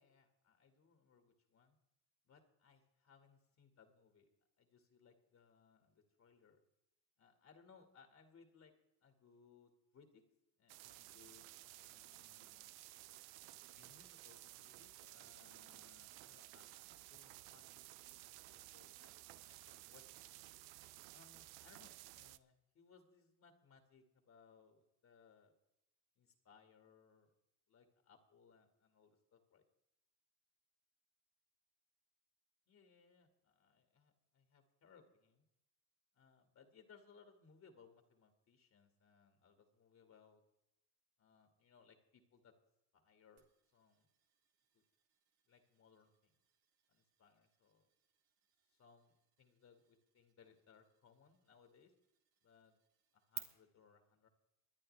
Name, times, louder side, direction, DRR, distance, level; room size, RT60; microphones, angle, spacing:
voice 1, 0.0-1.8 2.2-4.3 4.6-6.6 7.2-8.7 9.0-10.2 10.6-12.8 13.8-17.8 18.2-19.1 19.5-20.3 21.1-25.5 26.2-27.3 27.7-29.6 32.7-35.5 36.1-40.4 41.2-42.5 42.9-43.4 43.7-44.1 44.7-44.8 45.5-46.3 46.9-47.9 48.7-51.9 52.4-52.8 53.1-54.3, left 5 dB, 40° left, 5 dB, 1.9 m, -67 dB
sound 1, 10.7-22.4, right 17 dB, 70° right, 0.6 m, -56 dB
sound 2, 43.4-53.4, right 13 dB, 85° right, 1.6 m, -59 dB
23.0 x 9.8 x 3.3 m, 0.87 s
supercardioid pair, 90°, 40 cm